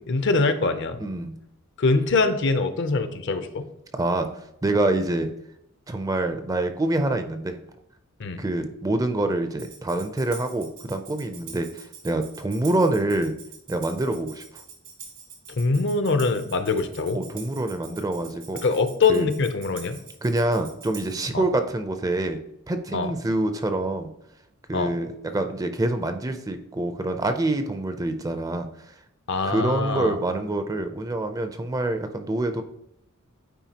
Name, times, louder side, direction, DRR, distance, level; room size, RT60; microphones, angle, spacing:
voice 1, 0.0-1.0 1.8-3.7 8.2-8.4 15.6-17.2 18.6-20.0 21.3-21.4 22.9-23.1 24.7-24.9 29.3-30.2, left 3 dB, 55° left, 10 dB, 0.6 m, -23 dB
voice 2, 1.0-1.3 3.9-4.3 4.6-5.3 5.9-7.6 8.4-13.4 13.7-14.4 17.1-18.6 19.1-19.3 20.2-22.4 22.7-24.1 24.7-28.7 29.4-32.6, right 2 dB, 15° right, 8 dB, 0.4 m, -26 dB
Tambourine, 9.6-21.3, right 6 dB, 80° right, 1.8 m, -45 dB
9.0 x 4.4 x 2.8 m, 0.82 s
head